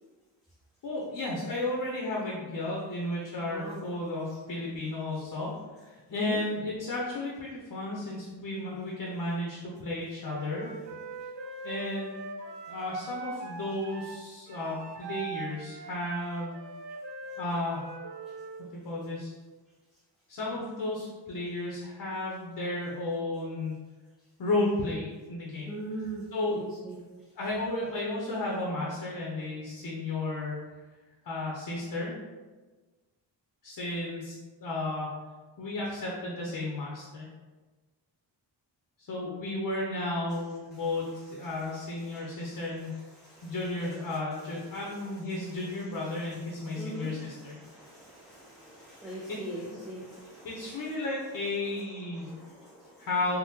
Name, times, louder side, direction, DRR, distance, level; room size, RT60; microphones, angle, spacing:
voice 1, 0.8-5.5 5.8-10.7 11.6-12.2 12.7-16.5 17.4-17.8 18.7-19.3 20.3-23.7 24.4-25.7 26.3-26.6 27.3-30.6 31.2-32.1 33.6-34.3 34.6-35.2 35.6-37.3 39.0-42.9 43.4-47.6 49.3-49.4 49.6-49.8 50.4-52.3 53.0-53.4, left 2 dB, 55° left, -3 dB, 0.7 m, -33 dB
voice 2, 3.4-3.9 6.1-6.4 25.7-26.2 26.5-27.0 40.7-40.8 41.4-41.5 42.1-43.5 44.7-45.7 46.1-50.9 52.1-53.1, right 2 dB, ahead, -7 dB, 0.4 m, -43 dB
Wind instrument woodwind instrument, 10.3-18.6, right 3 dB, 75° right, 0.6 m, -42 dB
3.5 x 2.1 x 2.8 m, 1.3 s
cardioid pair, 85°, 44 cm